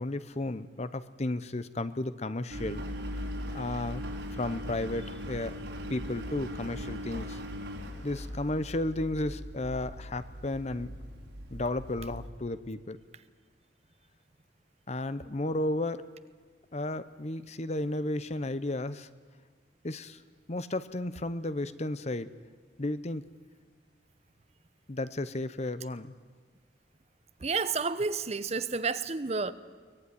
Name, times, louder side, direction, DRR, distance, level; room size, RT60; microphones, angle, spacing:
voice 1, 0.0-2.8 3.5-4.0 4.4-5.6 5.9-7.4 8.0-10.9 11.5-13.0 14.9-16.0 16.7-19.1 19.8-20.2 20.5-22.3 22.8-23.2 24.9-26.1, left 2 dB, 40° left, 0.8 m, -33 dB
Engine, 2.5-12.3, equal, 85° right, 4.9 m, -39 dB
voice 2, 27.4-29.5, right 4 dB, 35° right, 0.9 m, -30 dB
23.0 x 19.0 x 9.7 m
head